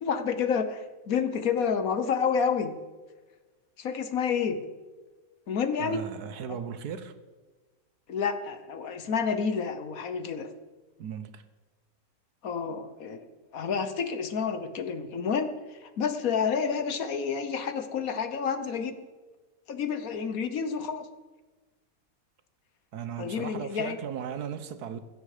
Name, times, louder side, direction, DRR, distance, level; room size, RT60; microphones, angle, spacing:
voice 1, 0.0-2.8 3.8-4.6 5.5-6.0 8.1-10.5 12.4-13.2 13.5-18.9 19.7-21.1 23.2-24.0, left 6 dB, 60° left, 1.4 m, -29 dB
voice 2, 5.8-7.2 11.0-11.4 22.9-25.0, right 8 dB, 70° right, 1.4 m, -37 dB
16.0 x 13.0 x 5.0 m
omnidirectional pair, 1.8 m